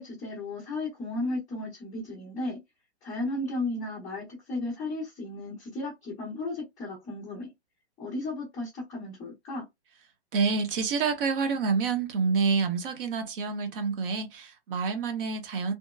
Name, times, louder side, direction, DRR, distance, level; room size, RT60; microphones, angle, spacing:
voice 1, 0.0-2.6 3.0-7.5 8.0-9.6, left 2 dB, 10° left, 0.5 m, -34 dB
voice 2, 10.3-15.7, right 5 dB, 55° right, 0.8 m, -28 dB
2.9 x 2.1 x 2.2 m
hypercardioid pair, 150°, 34 cm